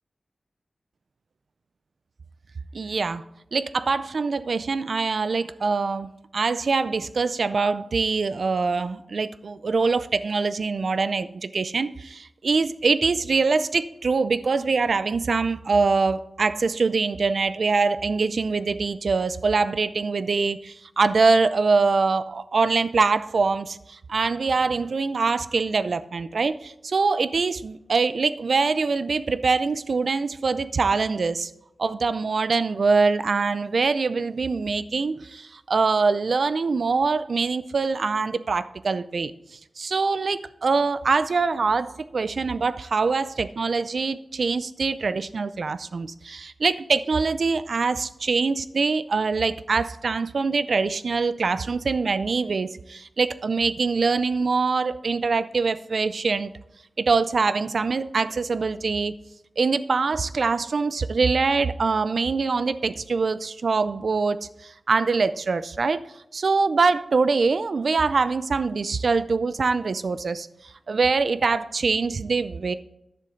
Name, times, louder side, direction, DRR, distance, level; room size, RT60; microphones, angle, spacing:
voice 1, 2.7-3.2 3.5-31.5 31.8-56.5 57.0-59.1 59.6-70.5 70.9-72.7, right 4 dB, 75° right, 14 dB, 0.4 m, -24 dB
11.0 x 6.7 x 3.7 m, 0.81 s
wide cardioid pair, 100°, 0 cm